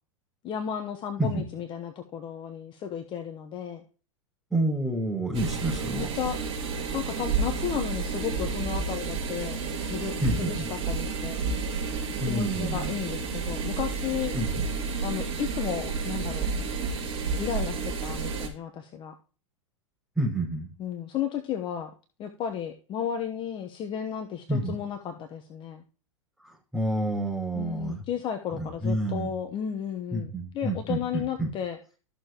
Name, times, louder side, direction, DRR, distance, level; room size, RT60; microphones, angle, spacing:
voice 1, 0.4-3.8 5.9-6.4 6.9-11.4 12.3-14.3 15.0-16.5 17.4-19.1 20.8-21.9 22.2-25.8 27.5-31.8, left 9 dB, 30° left, 6 dB, 1.0 m, -33 dB
voice 2, 4.5-6.1 10.2-10.7 12.2-12.9 14.3-14.6 20.2-20.7 24.5-24.7 26.4-28.0 28.5-29.3 30.1-31.5, right 1 dB, 5° right, -4 dB, 5.4 m, -29 dB
sound 1, 5.3-18.5, right 5 dB, 35° right, 4.2 m, -31 dB
13.5 x 6.7 x 3.0 m, 0.38 s
hypercardioid pair, 110°, 17 cm